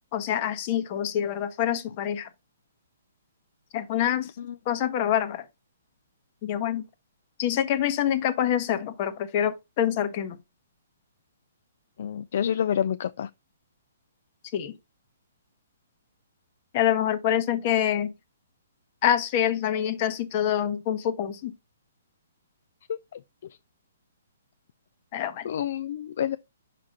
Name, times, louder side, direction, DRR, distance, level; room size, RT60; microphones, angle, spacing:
voice 1, 0.1-2.3 3.7-4.3 4.7-5.5 6.4-6.8 7.4-10.4 14.5-14.7 16.7-18.1 19.0-21.5 25.1-25.5, left 10 dB, 40° left, 1.0 m, -26 dB
voice 2, 12.0-13.3 22.9-23.2 25.4-26.4, left 9 dB, 60° left, 0.3 m, -28 dB
5.9 x 4.8 x 3.8 m
hypercardioid pair, 130°, 0 cm